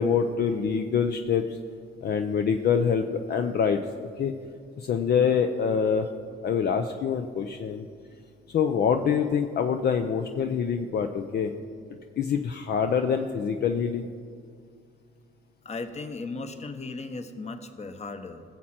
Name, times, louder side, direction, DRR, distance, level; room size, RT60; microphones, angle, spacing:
voice 1, 0.0-1.6 2.0-4.3 4.8-6.1 6.4-7.9 8.5-11.5 12.2-14.1, left 6 dB, 55° left, 6 dB, 0.6 m, -25 dB
voice 2, 15.6-18.4, left 3 dB, 35° left, 8 dB, 1.1 m, -36 dB
18.5 x 7.5 x 4.3 m, 2.1 s
cardioid pair, 90°, 20 cm